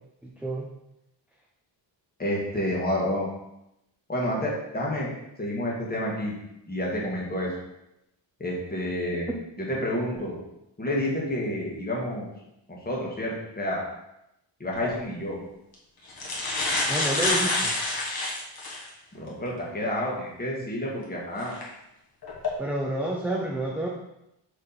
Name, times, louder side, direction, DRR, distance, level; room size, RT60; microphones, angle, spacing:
voice 1, 0.2-0.7 16.9-17.8 22.6-23.9, right 1 dB, 5° right, -2 dB, 0.5 m, -29 dB
voice 2, 2.2-3.3 4.1-5.1 5.4-6.3 6.7-7.5 8.4-9.3 9.6-10.4 10.8-12.3 12.9-13.8 14.6-15.4 19.1-21.5, left 1 dB, 20° left, -4 dB, 1.7 m, -29 dB
sound 1, 14.7-14.9 15.7-15.8 16.1-18.9 19.5-19.6 21.4-21.6 22.2-22.5, left 2 dB, 50° left, 1.6 m, -27 dB
7.0 x 3.6 x 4.0 m, 0.85 s
wide cardioid pair, 140°, 46 cm